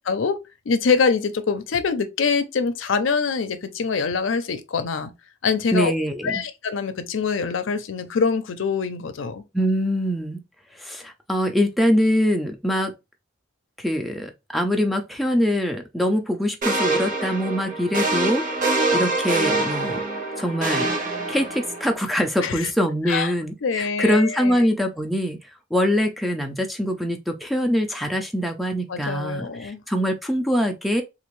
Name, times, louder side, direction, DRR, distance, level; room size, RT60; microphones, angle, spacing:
voice 1, 0.1-0.4 0.7-5.1 5.4-5.9 6.2-9.4 22.4-22.7 23.1-23.3 23.6-24.6 28.9-29.8, left 5 dB, 85° left, 0.5 m, -24 dB
voice 2, 5.7-6.4 9.5-10.4 10.8-12.9 13.8-18.5 18.9-20.0 20.4-20.9 21.3-25.4 25.7-31.0, equal, ahead, 0.4 m, -23 dB
sound 1, 16.6-21.9, right 2 dB, 45° right, 0.9 m, -25 dB
3.4 x 2.4 x 3.1 m
head